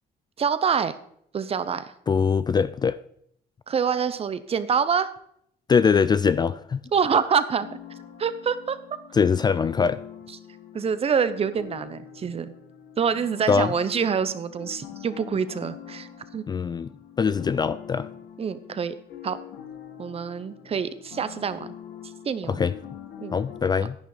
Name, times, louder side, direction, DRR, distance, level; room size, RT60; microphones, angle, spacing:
voice 1, 0.4-1.0 1.3-1.9 3.7-5.1 6.9-7.7 8.2-8.8 10.7-12.5 13.0-16.4 18.4-18.9 19.2-19.4 20.0-21.8 22.0-22.6 23.2-23.3, right 6 dB, 35° right, 14 dB, 0.8 m, -26 dB
voice 2, 2.1-3.0 5.7-6.8 9.1-10.0 13.5-13.7 16.5-16.9 17.2-18.1 22.5-22.7 23.3-24.0, left 6 dB, 25° left, 15 dB, 0.3 m, -22 dB
sound 1, 7.6-23.6, left 9 dB, 75° left, 1.7 m, -44 dB
10.5 x 10.0 x 4.0 m, 0.69 s
cardioid pair, 110°, 17 cm